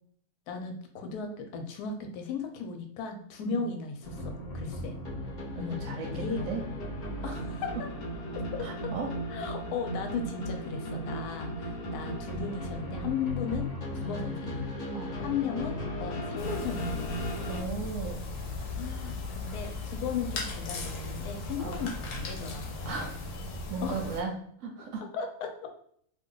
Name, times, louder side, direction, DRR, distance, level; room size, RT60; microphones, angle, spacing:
voice 1, 0.5-4.9 5.5-5.8 6.1-6.4 7.2-7.9 8.3-8.7 9.3-14.7 15.2-17.1 18.6-23.1 23.8-24.1 25.1-25.8, left 5 dB, 90° left, 5 dB, 1.1 m, -36 dB
sound 1, 4.0-17.6, equal, 45° left, 0.7 m, -36 dB
voice 2, 5.6-6.6 7.2-7.3 8.6-9.1 14.0-14.3 14.9-15.2 17.5-18.4 21.6-21.9 22.9-23.2 23.7-24.3 24.6-25.0, right 4 dB, 70° right, 2 dB, 0.8 m, -36 dB
sound 2, 16.4-24.2, left 3 dB, 65° left, 0.9 m, -37 dB
2.6 x 2.3 x 3.7 m, 0.64 s
omnidirectional pair, 1.6 m